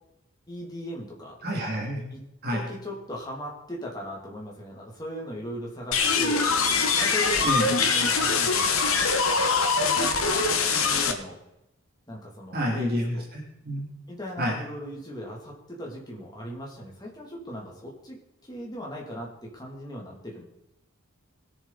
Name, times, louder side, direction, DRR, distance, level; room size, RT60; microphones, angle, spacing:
voice 1, 0.5-1.4 2.1-2.2 2.5-6.5 7.0-9.1 9.7-11.4 12.1-13.2 14.1-18.2 18.5-20.4, equal, 20° left, -2 dB, 2.8 m, -38 dB
voice 2, 1.4-2.1 2.4-2.7 7.4-7.7 12.5-13.9 14.4-14.6, equal, 45° right, -2 dB, 2.8 m, -29 dB
sound 1, 5.9-11.1, left 4 dB, 80° left, 1.4 m, -23 dB
21.5 x 7.2 x 4.2 m, 0.88 s
head